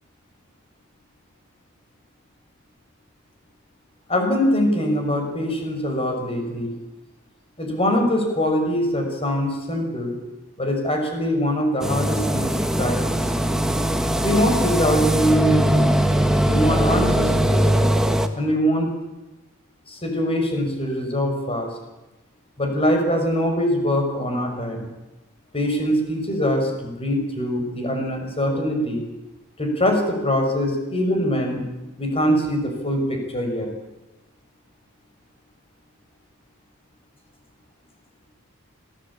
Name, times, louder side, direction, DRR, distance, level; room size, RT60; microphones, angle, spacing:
voice 1, 4.1-6.7 7.6-10.2 10.6-13.2 14.2-15.9 16.5-17.9 18.3-18.9 19.9-21.7 22.6-24.9 25.5-29.1 29.6-31.7 32.0-33.7, equal, 25° left, 3 dB, 6.2 m, -23 dB
sound 1, 11.8-18.3, right 1 dB, 5° right, 1.5 m, -20 dB
26.0 x 17.5 x 8.7 m, 1.0 s
head